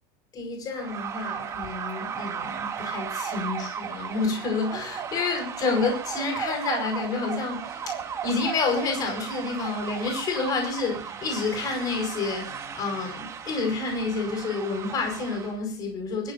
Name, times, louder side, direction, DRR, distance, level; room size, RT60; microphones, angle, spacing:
voice 1, 0.3-16.3, left 4 dB, 30° left, 5.0 m, -29 dB
sound 1, 0.7-15.6, right 7 dB, 25° right, 2.1 m, -35 dB
23.5 x 14.0 x 2.7 m
supercardioid pair, 155°, 12 cm